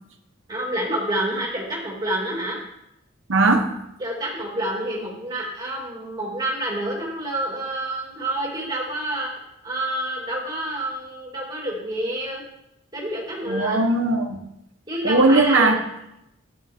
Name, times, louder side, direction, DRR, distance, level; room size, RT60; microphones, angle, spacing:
voice 1, 0.5-2.6 4.0-9.3 9.6-12.4 12.9-13.8 14.9-15.8, right 1 dB, 20° right, -3 dB, 2.5 m, -28 dB
voice 2, 3.3-3.8 13.5-14.4 15.0-15.8, right 2 dB, 70° right, 4 dB, 1.1 m, -18 dB
11.0 x 8.8 x 3.6 m, 0.83 s
head